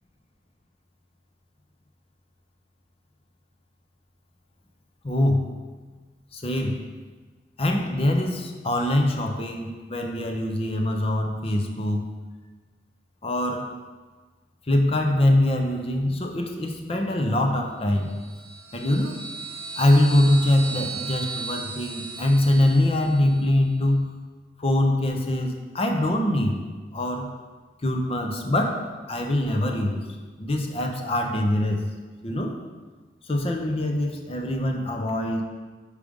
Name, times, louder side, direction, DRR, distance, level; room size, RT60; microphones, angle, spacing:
voice 1, 5.0-5.5 6.3-6.8 7.6-12.1 13.2-13.7 14.7-18.2 18.7-19.2 19.8-24.1 24.6-26.6 26.9-27.3 27.8-30.0 30.4-31.8 32.2-32.6 33.3-35.4, left 1 dB, 35° left, 3 dB, 0.6 m, -23 dB
sound 1, 18.0-23.4, right 4 dB, 20° right, 1.0 m, -36 dB
5.0 x 4.9 x 5.2 m, 1.4 s
head